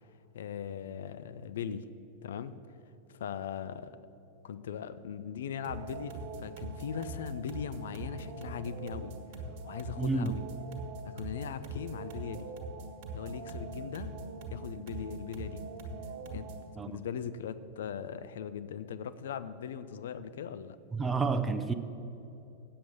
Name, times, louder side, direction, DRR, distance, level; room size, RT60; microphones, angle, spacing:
voice 1, 0.3-1.8 2.2-2.5 3.2-4.0 4.4-9.1 9.7-10.5 11.0-12.5 13.1-14.1 14.5-15.6 16.3-16.5 16.9-20.8, left 7 dB, 60° left, 13 dB, 0.4 m, -39 dB
sound 1, 5.6-16.7, right 2 dB, 45° right, 1.6 m, -42 dB
voice 2, 10.0-10.4 16.8-16.9 20.9-21.7, right 4 dB, 15° right, 9 dB, 0.5 m, -30 dB
8.5 x 7.6 x 7.2 m, 2.9 s
figure-of-eight pair, 90°, 0 cm